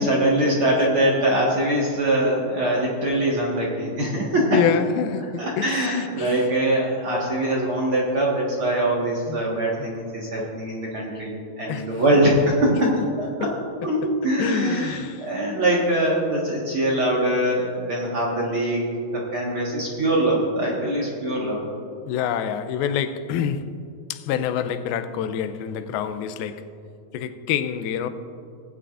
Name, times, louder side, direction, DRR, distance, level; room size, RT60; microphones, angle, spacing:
voice 1, 0.0-4.6 5.4-12.7 13.2-13.5 13.8-18.8 19.1-21.6, right 1 dB, 50° right, 1.7 m, -23 dB
voice 2, 4.5-6.5 9.3-9.4 9.8-9.9 10.4-10.5 11.7-11.9 12.8-12.9 13.4-13.5 14.4-15.3 22.1-23.7 24.1-26.6 27.1-28.1, left 8 dB, 85° left, 2.5 m, -27 dB
19.5 x 9.0 x 2.5 m
omnidirectional pair, 4.3 m